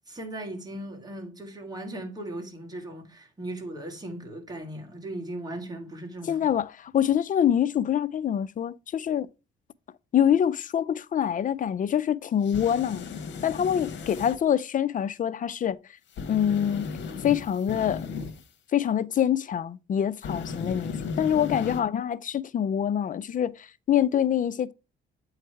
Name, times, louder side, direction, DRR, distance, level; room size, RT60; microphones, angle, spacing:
voice 1, 0.1-6.5 13.6-13.8, right 1 dB, 20° right, 2.1 m, -38 dB
voice 2, 6.2-9.3 10.1-13.1 13.4-16.0 16.3-16.9 17.2-18.1 18.7-24.7, left 9 dB, 40° left, 0.4 m, -25 dB
sound 1, 12.4-14.4 16.1-18.5 20.2-21.8, left 5 dB, 65° left, 1.3 m, -35 dB
8.4 x 3.3 x 4.5 m
cardioid pair, 90°, 20 cm